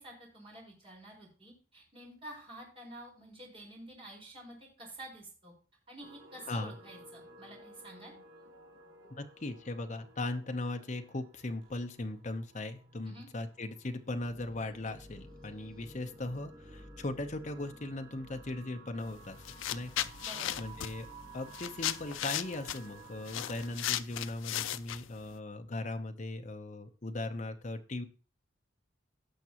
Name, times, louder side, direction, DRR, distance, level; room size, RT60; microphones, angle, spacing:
voice 1, 0.0-5.5 5.9-8.1 13.1-13.3 20.2-20.6, right 1 dB, 30° right, -2 dB, 4.5 m, -49 dB
sound 1, 6.0-23.9, right 3 dB, 85° right, 3.3 m, -55 dB
voice 2, 9.1-19.4 19.7-20.1 20.6-21.1 21.3-28.0, left 2 dB, 35° left, 6 dB, 0.8 m, -38 dB
sound 2, 14.2-24.4, equal, 5° left, 1.9 m, -56 dB
sound 3, 19.0-19.2 19.4-25.3, left 12 dB, 70° left, 0.4 m, -36 dB
17.0 x 6.0 x 2.9 m, 0.38 s
head